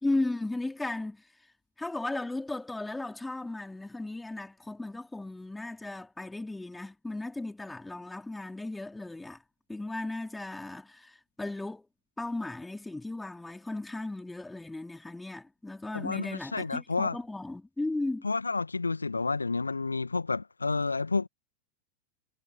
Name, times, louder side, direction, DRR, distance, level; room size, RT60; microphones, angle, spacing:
voice 1, 0.0-1.2 1.8-9.4 9.7-11.9 12.2-18.3, left 2 dB, 5° left, 4.1 m, -36 dB
voice 2, 15.9-17.2 18.2-21.3, left 3 dB, 80° left, 1.8 m, -30 dB
figure-of-eight pair, 90°, 0 cm